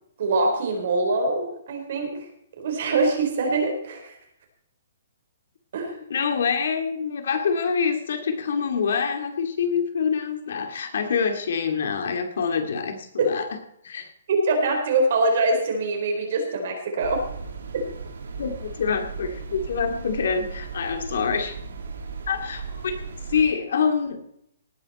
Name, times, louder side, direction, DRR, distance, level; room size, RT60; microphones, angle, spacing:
voice 1, 0.2-2.2 2.6-4.2 5.7-6.0 13.2-13.3 14.3-17.2, right 2 dB, 45° right, 3 dB, 4.5 m, -23 dB
voice 2, 6.1-13.5 13.8-14.1 18.4-21.6 22.3-22.9 23.3-24.2, left 6 dB, 60° left, 6 dB, 2.6 m, -26 dB
sound 1, 17.0-23.4, right 5 dB, 80° right, 3.4 m, -36 dB
18.5 x 10.0 x 4.4 m, 0.72 s
hypercardioid pair, 170°, 0 cm